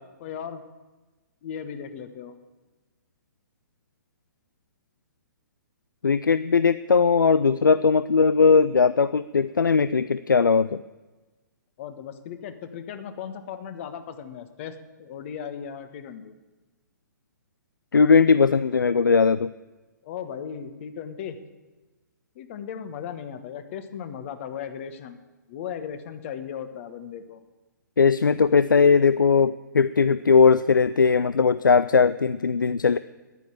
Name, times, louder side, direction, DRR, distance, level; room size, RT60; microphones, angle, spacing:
voice 1, 0.2-0.6 1.4-2.4 11.8-16.3 20.0-21.4 22.3-25.2 25.5-27.4, left 8 dB, 40° left, 10 dB, 1.3 m, -37 dB
voice 2, 6.0-10.8 17.9-19.5 28.0-33.0, left 5 dB, 80° left, 15 dB, 0.4 m, -19 dB
11.0 x 9.8 x 8.8 m, 1.2 s
figure-of-eight pair, 125°, 10 cm